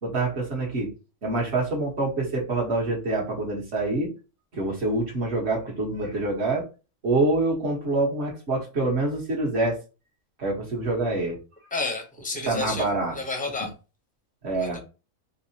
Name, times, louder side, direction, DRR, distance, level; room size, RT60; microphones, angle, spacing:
voice 1, 0.0-0.9 1.2-4.1 4.5-6.7 7.0-9.8 10.4-11.4 12.5-13.1 14.4-14.8, right 2 dB, 50° right, -1 dB, 1.4 m, -26 dB
voice 2, 11.7-13.7 14.5-14.8, left 3 dB, 10° left, 2 dB, 0.6 m, -31 dB
4.7 x 2.1 x 2.7 m, 0.31 s
omnidirectional pair, 1.5 m